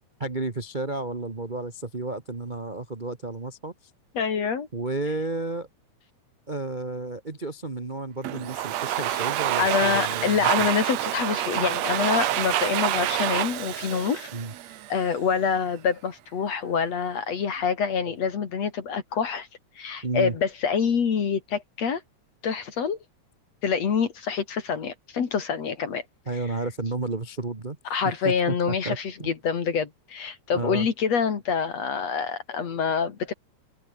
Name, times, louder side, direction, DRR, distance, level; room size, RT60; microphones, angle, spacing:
voice 1, 0.2-3.7 4.7-5.7 6.5-10.7 13.9-14.5 18.0-18.1 20.0-20.3 26.3-27.8 28.2-29.3 30.5-30.9, right 3 dB, 20° right, 1.3 m, -32 dB
voice 2, 4.2-4.7 9.2-9.3 9.6-14.3 14.9-19.5 19.8-22.0 22.4-23.0 23.6-26.0 27.9-33.3, left 6 dB, 60° left, 3.6 m, -26 dB
Domestic sounds home sounds, 8.2-15.1, right 13 dB, 70° right, 2.1 m, -27 dB
omnidirectional pair, 3.3 m